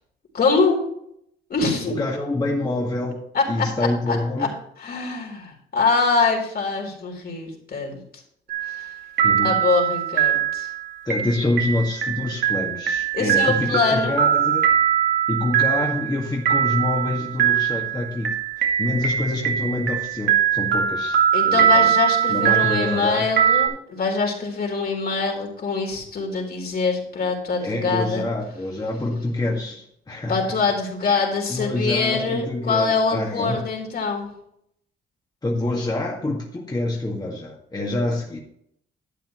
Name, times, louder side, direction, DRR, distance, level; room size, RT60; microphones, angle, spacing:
voice 1, 0.3-0.8 1.5-2.0 3.3-3.7 4.1-4.5 4.8-8.0 8.7-8.9 9.4-10.7 13.1-14.2 21.3-28.3 30.3-34.3, left 4 dB, 50° left, 0 dB, 3.8 m, -24 dB
voice 2, 2.0-4.5 9.2-9.5 11.1-14.7 15.3-18.3 18.6-21.9 22.3-23.3 27.6-30.4 31.0-33.7 35.4-38.4, left 2 dB, 20° left, -3 dB, 2.0 m, -26 dB
sound 1, 8.5-8.9 9.2-23.7, right 9 dB, 70° right, 2.2 m, -21 dB
12.0 x 8.8 x 3.2 m, 0.70 s
cardioid pair, 90°, 20 cm